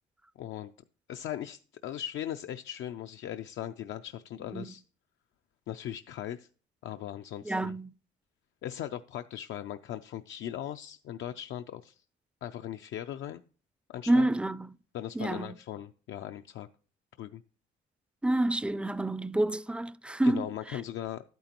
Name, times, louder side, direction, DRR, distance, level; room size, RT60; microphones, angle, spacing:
voice 1, 0.4-0.7 1.1-4.8 5.7-6.5 6.8-7.8 8.6-12.0 12.4-13.4 13.9-14.3 14.9-16.7 17.2-17.4 20.2-21.2, left 11 dB, 75° left, 0.5 m, -39 dB
voice 2, 7.5-7.9 14.1-14.7 15.2-15.5 18.2-20.4, right 1 dB, 5° right, 0.4 m, -28 dB
11.5 x 9.0 x 2.9 m
cardioid pair, 90°, 20 cm